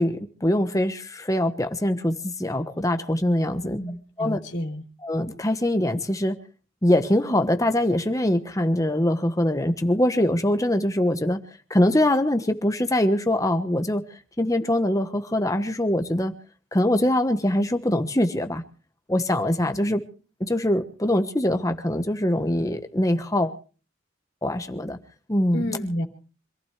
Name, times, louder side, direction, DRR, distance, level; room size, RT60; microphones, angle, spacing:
voice 1, 0.0-3.8 4.2-4.4 5.0-6.4 6.8-11.4 11.7-16.3 16.7-18.6 19.1-20.0 20.4-23.5 24.4-25.0 25.3-25.8, left 1 dB, 15° left, 7 dB, 1.2 m, -23 dB
voice 2, 3.6-4.8 25.5-26.0, equal, 60° left, 3 dB, 3.3 m, -30 dB
26.0 x 15.5 x 3.3 m, 0.38 s
head